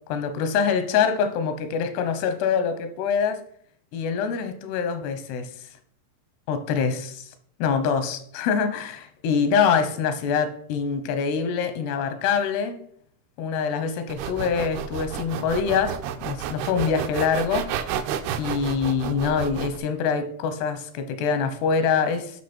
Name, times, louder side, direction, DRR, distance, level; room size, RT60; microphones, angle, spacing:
voice 1, 0.1-3.3 3.9-5.7 6.5-7.3 7.6-12.8 13.4-17.7 18.4-22.4, left 6 dB, 85° left, 3.1 m, -25 dB
sound 1, 14.1-19.8, right 9 dB, 85° right, 2.6 m, -31 dB
10.5 x 5.9 x 4.4 m
omnidirectional pair, 4.6 m